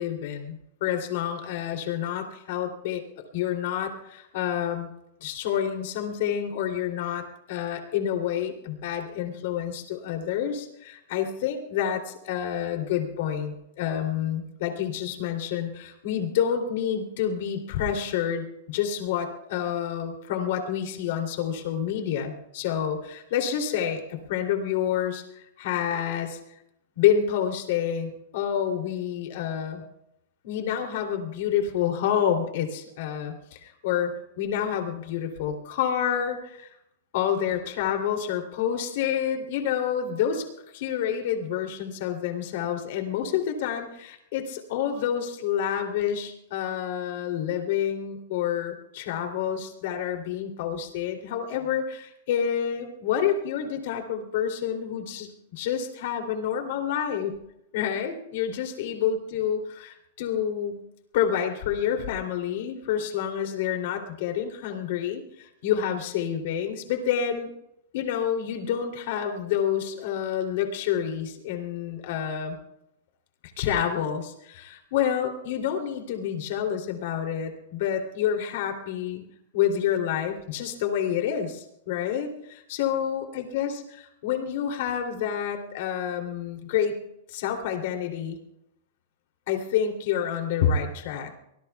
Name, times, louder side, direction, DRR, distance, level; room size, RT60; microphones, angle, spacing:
voice 1, 0.0-3.0 3.3-4.9 5.2-26.4 27.0-29.8 30.4-36.7 37.1-40.4 40.7-57.3 57.7-60.8 61.1-67.5 67.9-72.6 73.6-79.2 79.5-87.0 87.3-88.4 89.5-91.3, left 9 dB, 60° left, 3 dB, 3.0 m, -28 dB
24.0 x 20.0 x 2.4 m, 0.80 s
supercardioid pair, 150°, 0 cm